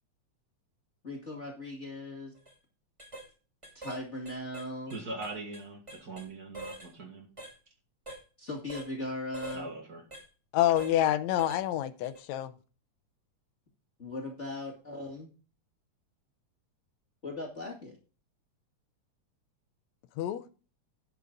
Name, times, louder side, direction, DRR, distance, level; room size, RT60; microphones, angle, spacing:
voice 1, 1.0-2.3 3.7-4.9 8.4-9.7 14.0-15.3 17.2-18.0, left 2 dB, 25° left, 2.1 m, -38 dB
sound 1, 2.3-2.5 3.0-3.3 3.6-6.3 6.5-6.9 7.4-7.5 8.1-8.2 8.7-8.9 9.3-9.6 10.1-10.2 10.8-11.0 11.4-11.6 12.0-12.2, right 2 dB, 10° right, 2.4 m, -44 dB
voice 2, 4.9-7.3 9.5-10.0, right 2 dB, 35° right, 1.9 m, -41 dB
voice 3, 10.5-12.5 20.2-20.4, left 12 dB, 75° left, 1.9 m, -27 dB
11.0 x 8.3 x 3.9 m
omnidirectional pair, 3.4 m